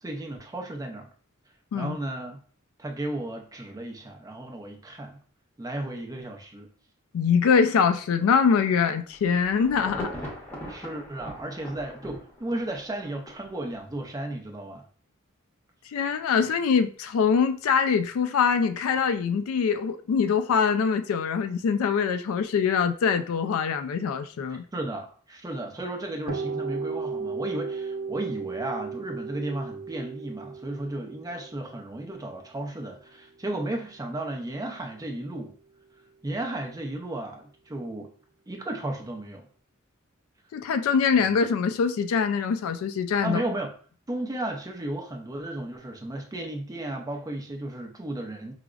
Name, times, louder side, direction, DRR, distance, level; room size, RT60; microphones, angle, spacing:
voice 1, 0.0-1.1 1.7-2.4 2.8-5.2 5.6-6.7 10.7-14.8 24.7-35.5 36.2-38.1 38.5-39.5 41.2-41.3 43.2-43.7 44.1-48.5, right 1 dB, 15° right, 0.5 m, -34 dB
voice 2, 7.1-10.1 15.9-24.6 40.5-43.4, left 6 dB, 70° left, 0.3 m, -23 dB
Insect / Thunder / Rain, 9.1-13.5 14.0-14.1, equal, 10° left, 0.8 m, -39 dB
sound 1, 26.3-34.0, right 4 dB, 85° right, 0.6 m, -35 dB
4.8 x 2.0 x 2.3 m
head